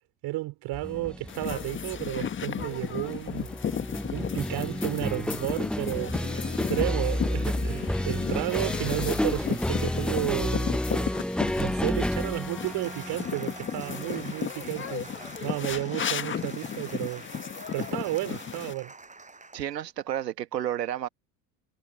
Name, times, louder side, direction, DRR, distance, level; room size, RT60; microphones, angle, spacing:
voice 1, 0.2-3.5 4.1-10.7 11.6-17.2 17.7-18.9, right 18 dB, 50° right, 5.4 m, -32 dB
sound 1, 0.7-15.8, left 1 dB, ahead, 1.0 m, -31 dB
sound 2, 1.3-18.7, left 8 dB, 25° left, 1.5 m, -34 dB
Applause, 12.6-19.8 20.2-20.3, right 3 dB, 15° right, 7.3 m, -47 dB
voice 2, 19.5-21.1, right 11 dB, 75° right, 2.0 m, -31 dB
figure-of-eight pair, 65°, 50 cm